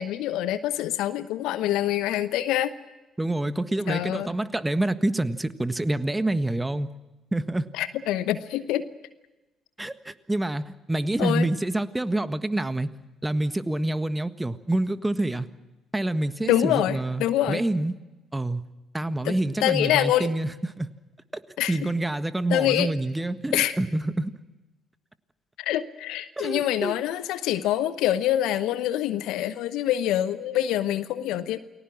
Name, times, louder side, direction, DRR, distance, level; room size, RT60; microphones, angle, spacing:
voice 1, 0.0-2.7 3.9-4.3 7.7-8.8 11.2-11.5 16.4-17.6 19.2-20.3 21.6-21.9 22.5-22.9 23.5-23.8 25.6-31.6, left 12 dB, 70° left, 14 dB, 0.9 m, -25 dB
voice 2, 3.2-6.9 7.3-7.7 9.8-12.9 13.2-15.5 15.9-17.9 18.3-18.6 18.9-20.5 20.8-20.9 21.3-21.4 21.7-24.3 26.4-27.0, right 1 dB, 15° right, 12 dB, 1.5 m, -27 dB
29.5 x 20.5 x 6.2 m, 1.1 s
hypercardioid pair, 45°, 0 cm